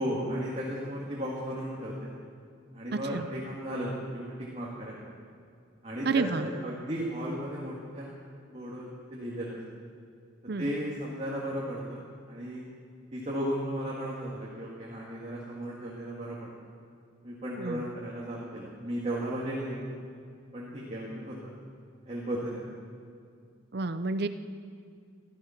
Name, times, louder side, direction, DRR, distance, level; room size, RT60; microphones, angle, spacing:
voice 1, 0.0-2.1 2.7-5.0 5.8-8.1 8.5-8.9 9.1-9.6 10.6-12.0 12.3-12.7 13.1-16.5 17.2-20.0 20.5-21.5 22.1-22.7, equal, 30° right, -5 dB, 2.0 m, -35 dB
voice 2, 2.9-3.3 6.1-6.5 10.5-10.7 17.6-17.9 23.7-24.3, right 3 dB, 55° right, 10 dB, 0.6 m, -30 dB
15.0 x 13.5 x 5.8 m, 2.3 s
head